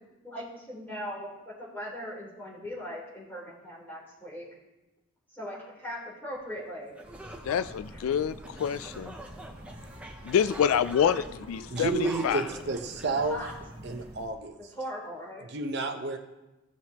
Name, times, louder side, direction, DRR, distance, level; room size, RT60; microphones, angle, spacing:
voice 1, 0.2-4.4 5.3-6.9 13.3-13.5 14.7-15.5, equal, 10° left, -8 dB, 3.3 m, -39 dB
sound 1, 6.6-6.7 6.9-14.0, right 1 dB, 5° right, 0.6 m, -45 dB
sound 2, 7.0-14.3, equal, 25° right, 1.7 m, -47 dB
voice 2, 7.5-9.2 10.2-12.4, left 8 dB, 80° left, 15 dB, 0.3 m, -27 dB
voice 3, 11.7-13.4 13.8-14.6 15.5-16.2, right 3 dB, 50° right, 4 dB, 0.8 m, -30 dB
15.5 x 6.3 x 2.9 m, 1.0 s
head